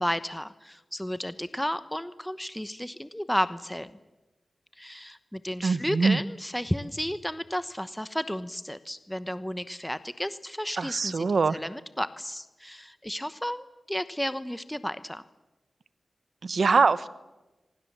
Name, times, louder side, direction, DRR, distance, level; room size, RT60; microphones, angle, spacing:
voice 1, 0.0-3.9 4.8-15.2, equal, 5° left, 13 dB, 1.0 m, -33 dB
voice 2, 5.6-6.2 10.8-11.6 16.4-17.1, right 4 dB, 70° right, 16 dB, 1.0 m, -23 dB
27.5 x 24.0 x 7.3 m, 1.1 s
cardioid pair, 60°, 0 cm